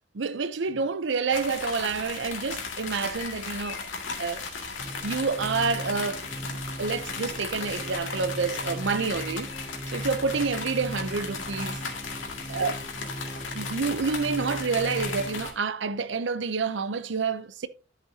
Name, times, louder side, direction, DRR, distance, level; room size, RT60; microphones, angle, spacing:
voice 1, 0.1-3.9 4.2-4.4 5.0-6.3 6.8-9.5 9.9-11.8 12.5-12.7 13.5-17.7, right 4 dB, 70° right, 0.6 m, -28 dB
sound 1, 1.3-15.5, left 4 dB, 80° left, 2.0 m, -36 dB
sound 2, 4.8-15.4, right 1 dB, 20° left, 3.4 m, -39 dB
11.0 x 7.3 x 2.8 m
head